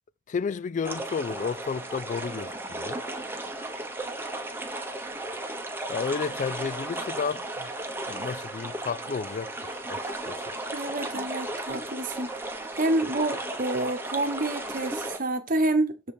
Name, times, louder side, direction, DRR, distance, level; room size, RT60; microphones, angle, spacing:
voice 1, 0.3-3.0 5.9-7.7 8.1-10.5, left 5 dB, 40° left, 0.3 m, -32 dB
sound 1, 0.8-15.2, right 2 dB, 10° right, 1.1 m, -35 dB
voice 2, 10.7-12.3 12.7-16.1, right 2 dB, 45° right, 1.1 m, -28 dB
6.8 x 5.2 x 4.3 m
head